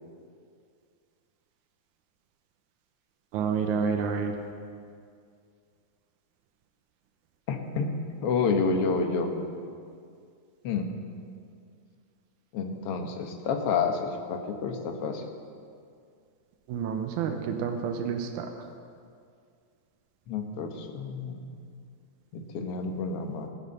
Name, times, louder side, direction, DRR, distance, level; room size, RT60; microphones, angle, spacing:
voice 1, 3.3-4.3 16.7-18.5, right 6 dB, 80° right, 4 dB, 2.3 m, -29 dB
voice 2, 7.5-7.9 8.2-9.3 10.6-10.8 12.5-15.2 20.3-21.4 22.3-23.5, left 5 dB, 60° left, 4 dB, 1.9 m, -29 dB
19.0 x 7.4 x 6.7 m, 2.2 s
omnidirectional pair, 3.5 m